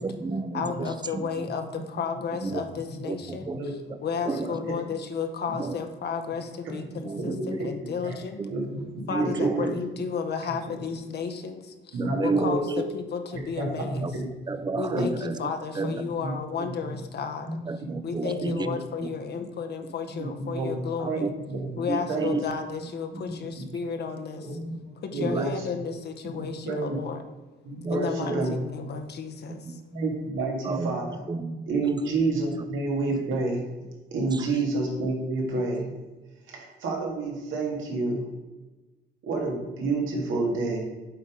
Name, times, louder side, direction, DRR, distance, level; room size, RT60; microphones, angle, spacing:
voice 1, 0.0-1.4 2.4-2.6 3.0-3.6 3.9-4.0 4.2-4.6 5.6-5.8 7.0-7.7 8.4-8.5 9.1-9.8 11.9-12.8 14.0-14.1 14.5-16.1 16.6-16.7 17.6-18.7 19.0-19.1 21.0-21.3 21.9-22.4 23.1-23.3 24.7-24.8 25.2-25.6 27.8-28.5 29.5-29.8 30.6-31.9 32.6-32.7 34.3-34.6, right 4 dB, 20° right, 12 dB, 0.5 m, -32 dB
voice 2, 0.5-3.5 4.0-8.4 9.1-14.1 14.8-17.6 18.0-21.3 21.8-24.6 25.0-27.2 27.9-29.8, left 6 dB, 55° left, 6 dB, 0.8 m, -33 dB
voice 3, 8.5-9.7 11.9-12.8 13.6-14.3 14.9-15.1 15.8-16.4 17.5-17.6 17.9-18.0 18.2-18.7 19.1-19.4 20.1-20.8 21.0-21.7 22.1-22.3 23.3-23.7 24.5-25.5 26.2-27.0 27.6-29.0 29.9-31.2 31.7-33.7 34.1-35.9 36.5-38.2 39.2-40.8, right 3 dB, 85° right, 0 dB, 1.9 m, -29 dB
7.9 x 3.7 x 4.9 m, 1.2 s
cardioid pair, 90°, 20 cm